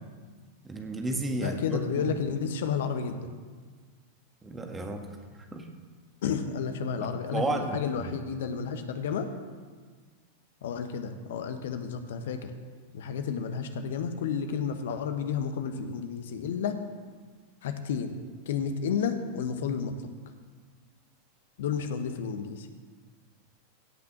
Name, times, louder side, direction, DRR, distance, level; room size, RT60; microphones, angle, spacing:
voice 1, 0.6-2.2 4.4-5.1 5.3-5.7 6.9-8.1, right 2 dB, 15° right, 3 dB, 1.8 m, -33 dB
voice 2, 1.4-3.4 6.2-9.3 10.6-12.5 12.9-16.8 17.6-18.1 18.5-20.1 21.6-22.7, left 6 dB, 60° left, 7 dB, 1.1 m, -31 dB
16.5 x 6.0 x 7.3 m, 1.5 s
figure-of-eight pair, 90°, 0 cm